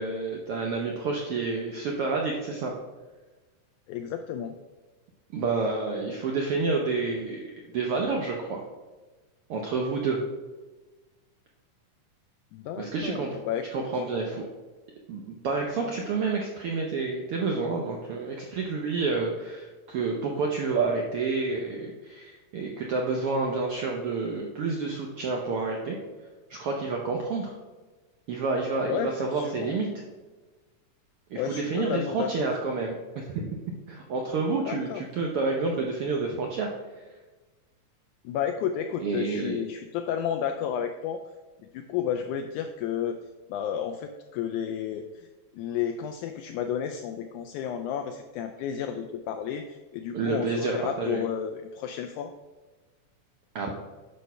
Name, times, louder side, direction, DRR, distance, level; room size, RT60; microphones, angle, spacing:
voice 1, 0.0-2.7 5.3-7.4 7.7-8.6 9.5-10.2 12.8-13.3 13.7-14.4 15.1-26.0 26.5-27.5 28.3-29.9 31.3-33.4 33.9-36.7 39.0-39.6 50.1-51.2 53.5-53.7, right 4 dB, 80° right, 0 dB, 1.2 m, -29 dB
voice 2, 3.9-4.6 12.5-14.0 28.8-29.7 31.4-32.3 34.6-35.1 38.2-41.2 41.7-43.2 43.5-45.3 45.5-52.3, left 8 dB, 80° left, 7 dB, 1.8 m, -32 dB
10.5 x 4.3 x 5.5 m, 1.3 s
omnidirectional pair, 3.7 m